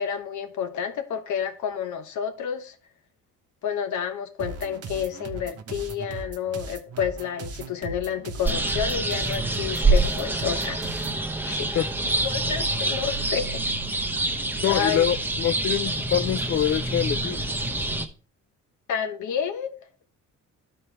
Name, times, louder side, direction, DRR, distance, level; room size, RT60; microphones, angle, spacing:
voice 1, 0.0-2.8 3.6-11.0 11.4-11.8 12.2-13.6 14.7-15.1 18.9-19.8, left 8 dB, 75° left, 1.0 m, -30 dB
sound 1, 4.4-11.2, right 4 dB, 55° right, 0.9 m, -38 dB
sound 2, 8.4-18.1, right 2 dB, 5° right, 0.7 m, -26 dB
voice 2, 14.6-17.4, left 10 dB, 45° left, 0.4 m, -25 dB
12.0 x 4.4 x 3.2 m
cardioid pair, 90°, 30 cm